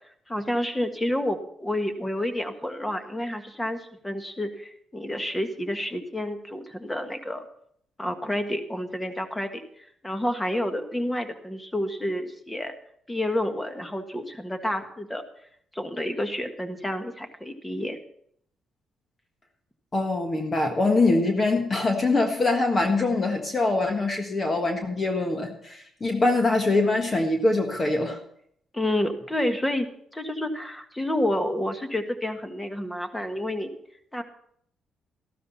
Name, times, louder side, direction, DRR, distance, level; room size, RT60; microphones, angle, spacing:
voice 1, 0.3-7.4 8.0-9.6 10.0-12.7 13.1-15.2 15.7-18.0 28.7-33.7 34.1-34.2, left 1 dB, 10° left, 7 dB, 1.6 m, -29 dB
voice 2, 19.9-28.2, left 2 dB, 30° left, 4 dB, 1.5 m, -23 dB
13.5 x 12.5 x 4.2 m, 0.67 s
cardioid pair, 90°, 0 cm